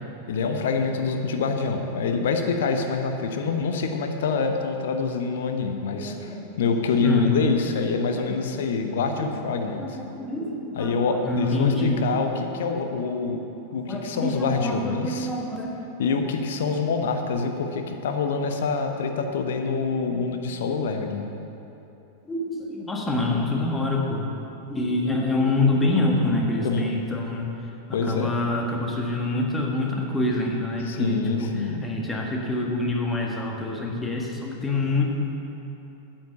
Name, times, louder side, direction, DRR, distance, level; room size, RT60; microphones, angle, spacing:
voice 1, 0.3-10.0 10.7-13.4 13.7-15.3 16.0-21.3 26.6-26.9 27.9-28.3 30.8-31.8, left 4 dB, 60° left, 5 dB, 1.0 m, -26 dB
voice 2, 6.0-6.7 7.0-7.4 9.2-9.3 9.8-12.1 13.9-15.7 22.3-24.3 24.7-27.5 27.9-35.0, left 2 dB, 10° left, -1 dB, 1.6 m, -26 dB
9.2 x 7.7 x 6.9 m, 2.9 s
figure-of-eight pair, 90°, 0 cm